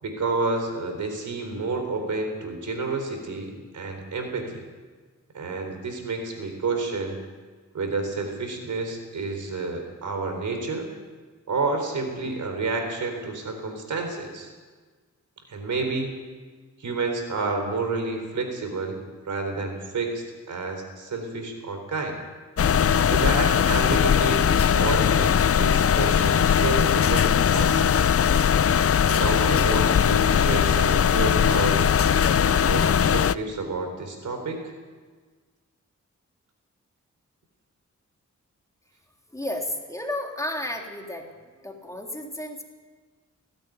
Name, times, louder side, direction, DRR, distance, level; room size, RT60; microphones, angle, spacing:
voice 1, 0.0-4.7 5.3-7.2 7.7-10.9 11.5-14.5 15.5-16.1 16.8-19.0 19.3-22.2 23.0-28.0 29.1-32.0 32.4-34.7, right 3 dB, 85° right, 5 dB, 4.0 m, -30 dB
sound 1, 22.6-33.3, left 8 dB, 50° left, 0.5 m, -20 dB
voice 2, 39.3-41.3 41.6-42.6, left 1 dB, 10° left, 1 dB, 3.4 m, -32 dB
18.0 x 16.0 x 9.3 m, 1.4 s
wide cardioid pair, 85°, 29 cm